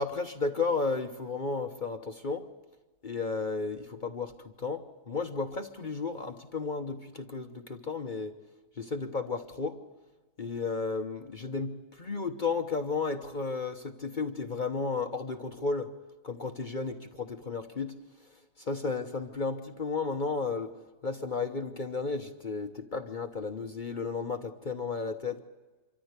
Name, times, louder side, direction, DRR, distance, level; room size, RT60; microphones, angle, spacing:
voice 1, 0.0-2.4 3.0-8.3 8.8-9.8 10.4-15.9 16.2-17.9 18.6-20.7 21.0-25.4, left 4 dB, 50° left, 5 dB, 0.5 m, -33 dB
25.5 x 14.0 x 8.1 m, 1.2 s
omnidirectional pair, 2.3 m